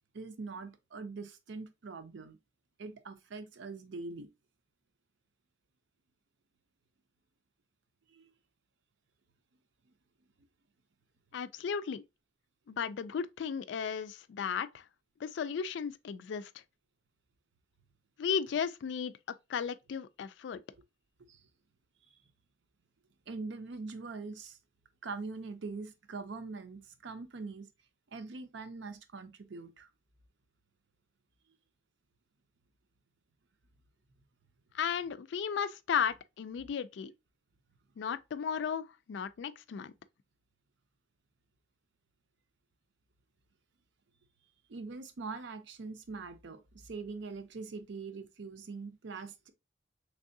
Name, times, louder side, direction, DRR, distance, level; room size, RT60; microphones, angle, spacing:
voice 1, 0.1-2.4 2.8-4.3 8.1-8.3 21.3-21.4 22.1-22.2 23.3-24.6 25.0-27.7 28.1-29.9 44.7-49.5, right 4 dB, 75° right, 0.6 m, -43 dB
voice 2, 11.3-12.0 12.7-14.8 15.2-16.5 18.2-19.1 19.5-20.6 34.7-37.1 38.0-39.9, left 7 dB, 75° left, 0.3 m, -35 dB
3.6 x 3.3 x 2.6 m
head